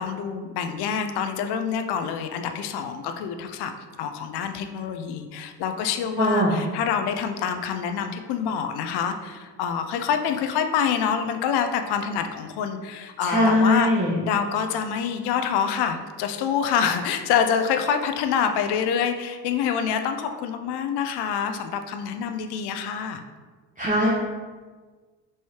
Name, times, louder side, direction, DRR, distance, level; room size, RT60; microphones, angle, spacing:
voice 1, 0.0-3.7 4.0-13.9 14.2-23.2, left 7 dB, 55° left, 7 dB, 0.6 m, -26 dB
voice 2, 6.2-6.5 13.2-14.1 23.8-24.1, left 1 dB, 15° right, -8 dB, 1.0 m, -20 dB
4.7 x 3.0 x 2.9 m, 1.4 s
hypercardioid pair, 70°, 50 cm